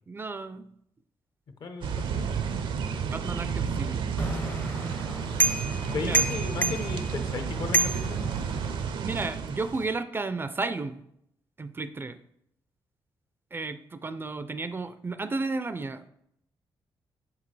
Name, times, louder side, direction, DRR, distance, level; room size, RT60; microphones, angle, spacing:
voice 1, 0.1-0.7 3.1-4.0 6.0-6.2 9.0-11.0 11.6-12.2 13.5-16.1, right 3 dB, 25° right, 11 dB, 0.3 m, -33 dB
voice 2, 1.6-2.3 5.8-8.2, left 4 dB, 60° left, 7 dB, 0.7 m, -35 dB
sound 1, 1.8-10.0, right 6 dB, 75° right, 0.5 m, -31 dB
sound 2, 4.2-8.9, right 2 dB, 20° left, 0.6 m, -30 dB
7.1 x 5.9 x 3.2 m, 0.75 s
cardioid pair, 100°, 9 cm